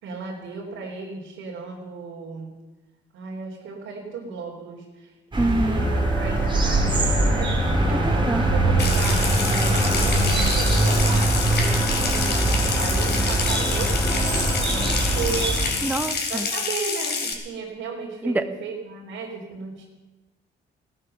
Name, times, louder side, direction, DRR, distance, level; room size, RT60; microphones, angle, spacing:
voice 1, 0.0-2.5 3.1-7.5 7.9-12.5 12.7-15.8 16.3-19.9, right 4 dB, 85° right, -4 dB, 3.2 m, -35 dB
sound 1, 5.3-15.7, right 2 dB, 25° right, 2.6 m, -23 dB
voice 2, 5.4-5.9 8.0-8.5 15.8-16.5 18.2-18.5, right 2 dB, 10° right, 9 dB, 0.9 m, -25 dB
sound 2, 5.7-16.1, equal, 10° left, 2.6 m, -28 dB
Water tap faucet / Sink (filling or washing) / Trickle dribble, 8.8-17.3, left 4 dB, 60° left, 3.2 m, -28 dB
16.5 x 11.5 x 6.6 m, 1.1 s
cardioid pair, 90°, 20 cm